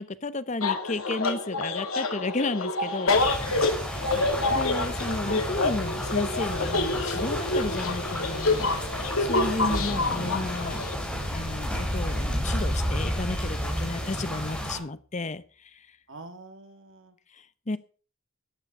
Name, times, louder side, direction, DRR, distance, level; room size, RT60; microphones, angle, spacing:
voice 1, 0.0-3.2 4.5-8.7 9.2-10.8 11.3-15.9 17.3-17.8, left 2 dB, 35° left, 15 dB, 0.8 m, -33 dB
sound 1, 0.6-11.0, left 3 dB, 85° left, 2.4 m, -27 dB
sound 2, 3.1-14.8, equal, 5° left, 4.1 m, -33 dB
sound 3, 11.2-14.2, equal, 15° right, 2.3 m, -31 dB
voice 2, 16.1-17.2, right 2 dB, 65° right, 7 dB, 2.5 m, -45 dB
14.0 x 9.8 x 5.4 m, 0.39 s
head